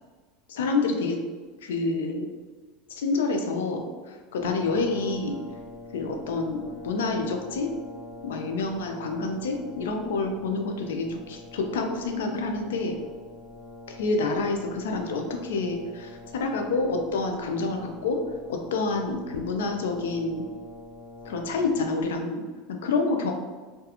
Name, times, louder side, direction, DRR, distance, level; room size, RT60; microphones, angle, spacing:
voice 1, 0.5-1.2 1.6-2.3 2.9-5.4 5.9-7.7 8.2-12.9 13.9-18.2 18.5-20.4 21.2-23.3, left 3 dB, 90° left, 4 dB, 0.4 m, -28 dB
Brass instrument, 4.4-22.2, left 2 dB, 5° left, 0.6 m, -45 dB
2.3 x 2.2 x 2.8 m, 1.4 s
supercardioid pair, 110°, 0 cm